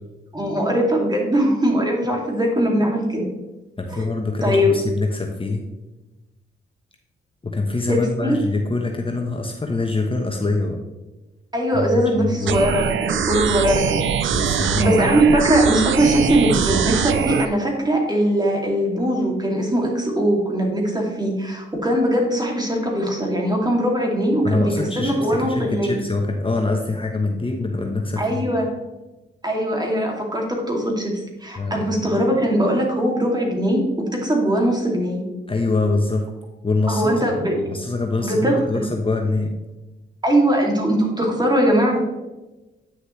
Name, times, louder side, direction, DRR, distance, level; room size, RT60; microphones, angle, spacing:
voice 1, 0.3-3.3 3.9-4.1 4.4-4.7 7.9-8.4 11.5-14.0 14.6-25.9 28.2-28.7 29.4-31.1 31.4-35.2 36.9-37.6 38.2-38.8 40.2-42.0, right 1 dB, 20° right, 0 dB, 2.7 m, -20 dB
voice 2, 3.8-5.6 7.4-10.8 11.7-12.7 14.3-15.0 24.4-28.4 31.6-31.9 35.5-36.2 36.6-37.4 37.7-39.5, left 3 dB, 25° left, 2 dB, 1.2 m, -24 dB
sound 1, 12.5-17.5, right 8 dB, 65° right, 0.6 m, -22 dB
9.7 x 6.3 x 3.3 m, 1.1 s
supercardioid pair, 50°, 21 cm